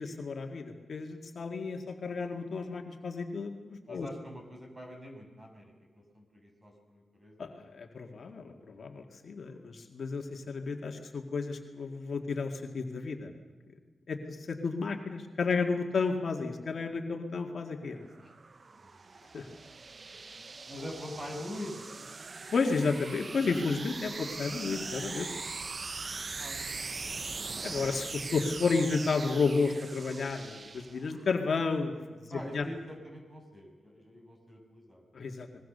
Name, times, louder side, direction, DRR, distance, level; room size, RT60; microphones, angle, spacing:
voice 1, 0.0-4.1 7.4-13.3 14.1-18.1 19.3-19.5 22.5-25.4 27.6-32.7 35.1-35.6, left 4 dB, 60° left, 3 dB, 2.1 m, -32 dB
voice 2, 3.9-7.4 18.2-18.3 18.7-19.0 20.7-21.7 26.1-26.9 32.3-35.0, left 1 dB, 20° right, 2 dB, 6.4 m, -44 dB
sound 1, 17.8-31.3, right 4 dB, 40° right, 0.6 m, -41 dB
25.0 x 21.5 x 6.8 m, 1.4 s
cardioid pair, 95°, 0 cm